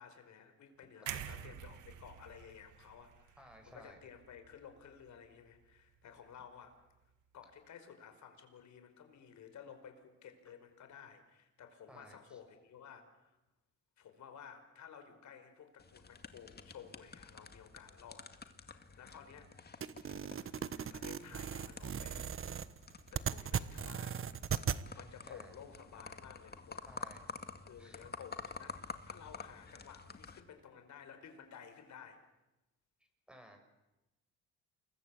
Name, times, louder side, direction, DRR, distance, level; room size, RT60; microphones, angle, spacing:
voice 1, 0.0-6.8 7.3-13.4 14.0-18.3 18.6-19.5 20.9-22.2 23.1-24.2 24.5-26.9 27.6-32.3, left 7 dB, 70° left, 7 dB, 5.1 m, -55 dB
voice 2, 1.0-1.4 3.4-4.0 11.9-12.4 25.3-25.6 26.9-27.2 27.8-28.1 33.3-33.6, equal, 5° right, 4 dB, 7.7 m, -57 dB
sound 1, 1.1-5.1 5.4-5.6, right 10 dB, 85° right, 2.0 m, -48 dB
sound 2, 15.8-30.4, left 4 dB, 35° left, 2.2 m, -50 dB
sound 3, 19.8-24.8, right 8 dB, 45° right, 1.2 m, -38 dB
28.5 x 22.0 x 8.4 m, 0.98 s
cardioid pair, 90°, 30 cm